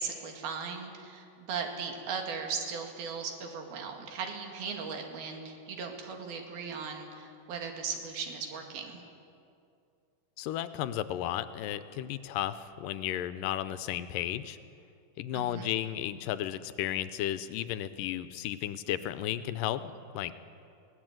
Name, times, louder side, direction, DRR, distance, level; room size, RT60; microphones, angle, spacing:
voice 1, 0.0-9.0 15.3-15.7, right 5 dB, 85° right, 3 dB, 4.0 m, -38 dB
voice 2, 10.4-14.6 15.2-20.3, left 12 dB, 75° left, 13 dB, 2.3 m, -34 dB
21.5 x 17.5 x 9.0 m, 2.5 s
omnidirectional pair, 4.2 m